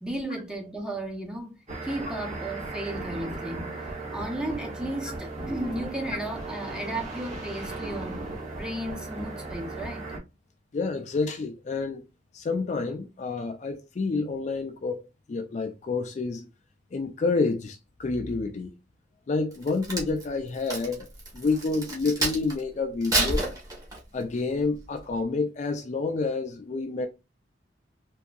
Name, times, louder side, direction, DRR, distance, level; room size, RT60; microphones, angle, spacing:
voice 1, 0.0-8.2 8.5-10.1, right 1 dB, 5° right, 0.7 m, -34 dB
sound 1, 1.7-10.2, right 2 dB, 40° right, 1.4 m, -36 dB
voice 2, 10.7-12.0 12.3-15.0 15.3-16.5 16.9-18.7 19.3-21.1 21.3-23.4 24.1-27.1, left 3 dB, 40° left, 0.3 m, -28 dB
Crack, 19.5-22.6 23.0-24.2 24.7-25.0, right 2 dB, 20° right, 1.1 m, -29 dB
3.6 x 2.7 x 2.3 m
head